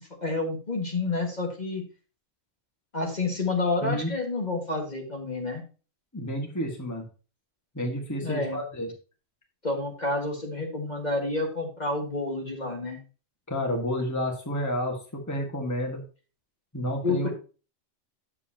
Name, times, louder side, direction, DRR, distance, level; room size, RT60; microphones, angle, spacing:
voice 1, 0.2-1.8 2.9-5.6 8.2-8.6 9.6-13.0 17.0-17.3, left 2 dB, 35° left, 0 dB, 1.9 m, -29 dB
voice 2, 3.8-4.1 6.1-7.0 7.7-8.9 13.5-16.0 16.7-17.3, equal, 15° left, 1 dB, 1.6 m, -30 dB
9.7 x 7.3 x 2.8 m, 0.35 s
omnidirectional pair, 1.3 m